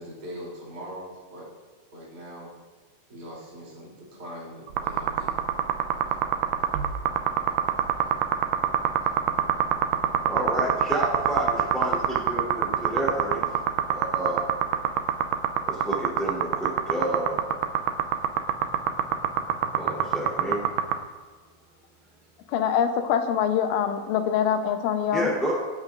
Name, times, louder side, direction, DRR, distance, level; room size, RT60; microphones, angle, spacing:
voice 1, 0.0-1.5 1.9-2.5 3.1-5.4 6.6-9.3 13.8-14.2, equal, 25° right, -7 dB, 3.3 m, -43 dB
sound 1, 4.7-21.0, right 10 dB, 80° right, 2.4 m, -24 dB
voice 2, 10.2-13.4 13.9-14.5 15.7-17.4 19.7-20.7 25.1-25.5, right 1 dB, ahead, -6 dB, 2.3 m, -29 dB
voice 3, 22.5-25.3, left 8 dB, 85° left, 6 dB, 3.4 m, -24 dB
26.0 x 10.5 x 2.6 m, 1.4 s
omnidirectional pair, 5.4 m